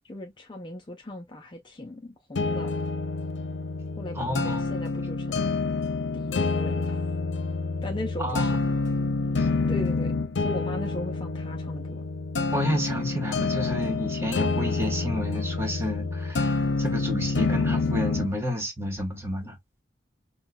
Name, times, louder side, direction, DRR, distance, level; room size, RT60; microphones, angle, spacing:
voice 1, 0.0-2.7 4.0-5.4 6.1-7.0 7.8-8.6 9.7-12.0, left 1 dB, 25° left, 0.4 m, -38 dB
sound 1, 2.4-18.4, left 3 dB, 80° left, 0.6 m, -27 dB
voice 2, 4.1-4.7 8.2-8.6 9.4-9.5 12.5-19.6, left 1 dB, 15° right, 1.2 m, -30 dB
5.5 x 2.2 x 2.2 m
head